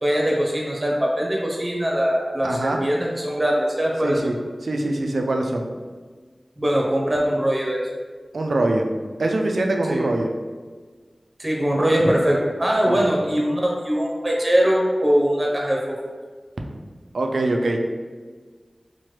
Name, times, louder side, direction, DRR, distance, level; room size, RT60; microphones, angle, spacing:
voice 1, 0.0-4.3 6.6-7.8 9.9-10.0 11.4-15.9, equal, 35° right, -2 dB, 0.6 m, -21 dB
voice 2, 2.4-2.8 4.0-4.3 4.6-5.7 8.3-8.9 9.2-10.3 12.8-13.1 17.1-17.8, right 2 dB, 80° right, 2 dB, 0.3 m, -23 dB
3.1 x 2.1 x 3.0 m, 1.5 s
cardioid pair, 40°, 0 cm